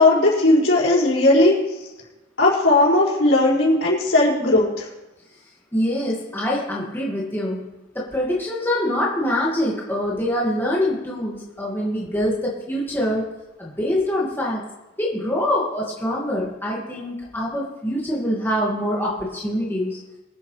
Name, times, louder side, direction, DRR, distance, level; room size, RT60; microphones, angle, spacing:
voice 1, 0.0-1.5 2.4-4.8, left 2 dB, 70° left, -6 dB, 5.4 m, -17 dB
voice 2, 5.7-7.6 7.9-13.3 13.6-14.6 15.0-20.0, left 1 dB, 10° left, -5 dB, 2.0 m, -24 dB
24.5 x 8.4 x 3.3 m, 1.0 s
head